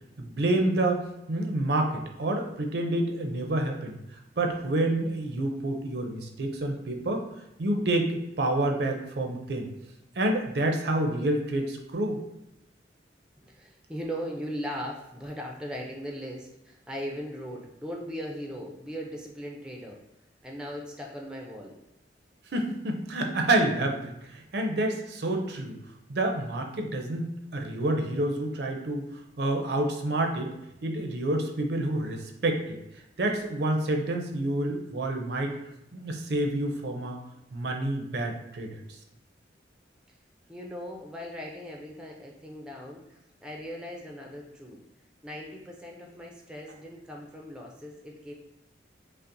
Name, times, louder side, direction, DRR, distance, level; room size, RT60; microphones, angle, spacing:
voice 1, 0.2-1.0 1.3-7.2 7.6-9.7 10.2-12.2 22.5-25.8 26.1-27.3 27.5-29.0 29.4-30.5 30.8-32.8 33.2-35.6 35.9-37.2 37.5-38.8, right 1 dB, 65° right, 3 dB, 0.5 m, -28 dB
voice 2, 13.4-20.0 20.4-21.8 40.5-44.8 45.2-48.3, equal, 5° right, 0 dB, 0.4 m, -39 dB
5.4 x 2.0 x 2.6 m, 0.88 s
head